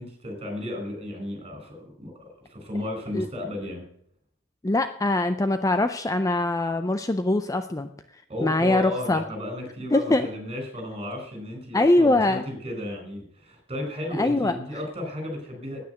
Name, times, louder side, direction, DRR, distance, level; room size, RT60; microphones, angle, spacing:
voice 1, 0.0-3.8 8.3-15.8, left 1 dB, 30° right, 3 dB, 4.6 m, -34 dB
voice 2, 4.6-7.9 8.4-9.2 9.9-10.3 11.7-12.4 14.2-14.5, left 2 dB, 15° left, 9 dB, 0.5 m, -22 dB
9.5 x 9.3 x 7.9 m, 0.68 s
head